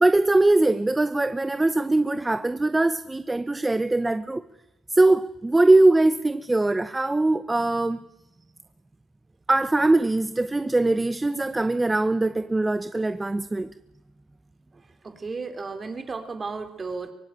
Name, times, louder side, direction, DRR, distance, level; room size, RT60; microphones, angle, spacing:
voice 1, 0.0-4.4 4.9-8.0 9.5-13.7, right 2 dB, 15° right, 0.7 m, -21 dB
voice 2, 14.7-17.1, right 4 dB, 30° right, 3.4 m, -34 dB
24.0 x 18.5 x 9.2 m
cardioid pair, 95°, 0 cm